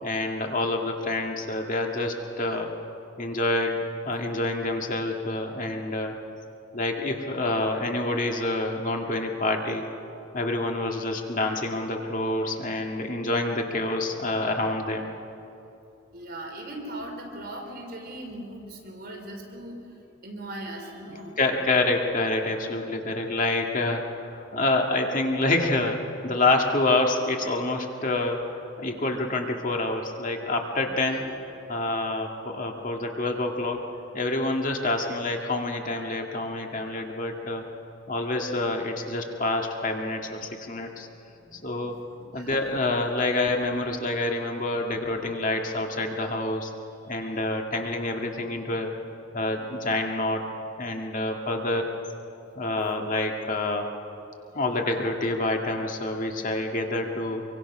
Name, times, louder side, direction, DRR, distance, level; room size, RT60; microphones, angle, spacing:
voice 1, 0.0-2.7 3.2-3.8 4.0-6.1 6.7-9.8 10.3-15.1 21.4-31.3 31.7-33.8 34.1-37.6 38.1-41.1 41.5-42.0 42.3-46.7 47.1-48.9 49.3-50.5 50.8-51.9 52.6-53.9 54.5-57.4, left 2 dB, 40° left, 2 dB, 2.1 m, -27 dB
voice 2, 16.1-19.8 20.2-21.4 30.9-31.2 41.4-41.8 42.2-42.6 47.2-47.3, right 1 dB, 50° right, 1 dB, 4.6 m, -39 dB
26.0 x 24.0 x 6.2 m, 2.9 s
head